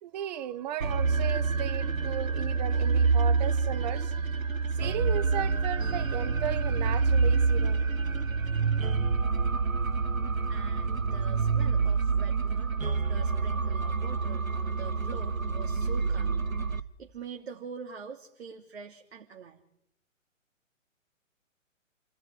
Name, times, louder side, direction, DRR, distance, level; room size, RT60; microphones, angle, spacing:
voice 1, 0.0-7.8, right 11 dB, 30° right, 1.4 m, -36 dB
sound 1, 0.8-16.8, right 4 dB, 80° right, 1.4 m, -27 dB
voice 2, 10.5-19.6, right 6 dB, 50° right, 3.0 m, -45 dB
29.0 x 18.5 x 9.8 m
figure-of-eight pair, 130°, 40 cm